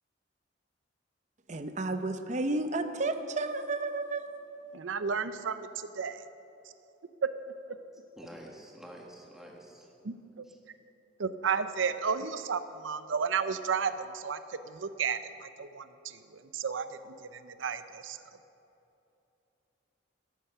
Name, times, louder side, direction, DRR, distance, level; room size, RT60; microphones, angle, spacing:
voice 1, 1.5-4.2, right 2 dB, 40° right, 9 dB, 0.7 m, -32 dB
voice 2, 4.7-6.2 7.2-7.3 10.0-10.4 11.2-18.2, right 6 dB, 85° right, 12 dB, 0.6 m, -33 dB
voice 3, 7.8-9.9 10.4-10.6, equal, ahead, -1 dB, 1.7 m, -49 dB
13.0 x 12.5 x 5.6 m, 2.9 s
head